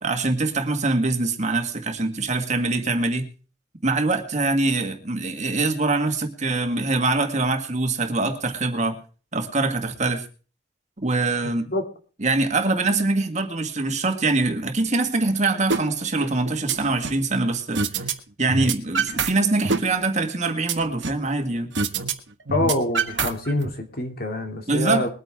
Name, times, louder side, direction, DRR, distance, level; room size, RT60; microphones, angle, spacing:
voice 1, 0.0-3.3 3.8-9.0 9.3-10.3 11.0-11.7 12.2-18.1 18.4-21.7 24.7-25.1, right 3 dB, 40° right, 5 dB, 1.8 m, -23 dB
sound 1, 15.7-15.8 16.2-17.2 17.7-18.1 18.4-19.3 19.6-21.3 21.7-22.1 22.4-23.7, right 5 dB, 80° right, 1.4 m, -25 dB
voice 2, 22.5-25.1, left 2 dB, 55° left, 4 dB, 2.7 m, -25 dB
21.5 x 9.4 x 3.6 m, 0.37 s
head